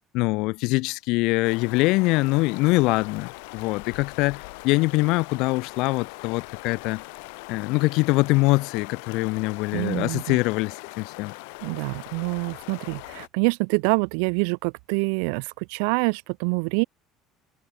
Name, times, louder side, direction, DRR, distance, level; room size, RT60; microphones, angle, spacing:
voice 1, 0.1-7.0 7.5-11.3, left 23 dB, 65° left, 0.7 m, -23 dB
sound 1, 1.4-13.3, left 32 dB, 90° left, 4.2 m, -41 dB
voice 2, 9.7-10.4 11.6-16.8, right 40 dB or more, 85° right, 0.4 m, -26 dB
cardioid pair, 145°, 0 cm